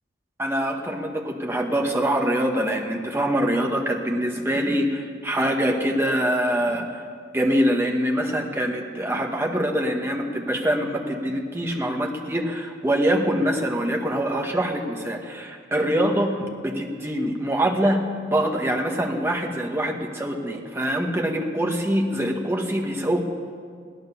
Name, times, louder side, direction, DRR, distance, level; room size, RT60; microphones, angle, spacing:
voice 1, 0.4-6.9 7.3-18.0 18.3-23.2, equal, 15° right, 1 dB, 1.4 m, -24 dB
17.0 x 12.0 x 6.9 m, 2.1 s
head